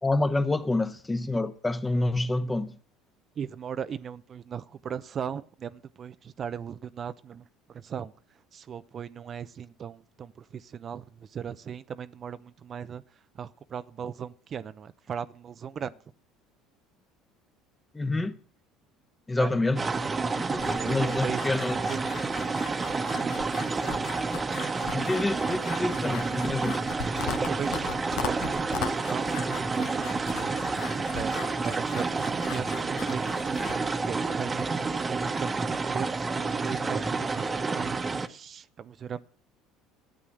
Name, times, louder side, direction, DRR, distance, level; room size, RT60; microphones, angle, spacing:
voice 1, 0.0-2.8 17.9-18.3 19.3-19.8 20.4-21.7 24.9-26.8, left 2 dB, 15° left, 1.4 m, -27 dB
voice 2, 3.4-7.4 7.7-8.1 8.5-13.0 13.3-15.9 19.3-19.5 20.6-22.0 23.2-23.3 27.4-39.2, right 8 dB, 40° right, 0.7 m, -38 dB
sound 1, 19.8-38.3, right 4 dB, 25° right, 1.3 m, -29 dB
sound 2, 20.6-33.8, left 8 dB, 65° left, 1.6 m, -40 dB
13.0 x 8.4 x 7.8 m
hypercardioid pair, 70°, 0 cm